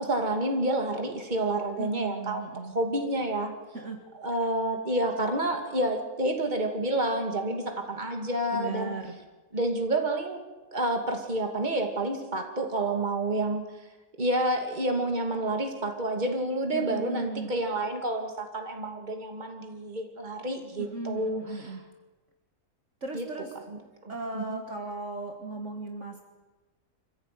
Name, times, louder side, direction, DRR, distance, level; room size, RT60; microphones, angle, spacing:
voice 1, 0.0-2.5 2.7-3.5 4.2-9.0 9.5-10.4 10.7-13.6 14.2-21.7 23.1-23.3 23.7-23.8 24.0-24.6, right 1 dB, 30° right, 4 dB, 2.6 m, -29 dB
voice 2, 1.8-2.7 3.7-4.0 8.5-9.1 16.7-17.5 20.8-21.8 23.0-23.5 24.1-26.2, right 3 dB, 50° right, 3 dB, 2.2 m, -36 dB
26.0 x 15.0 x 9.4 m, 1.2 s
omnidirectional pair, 1.6 m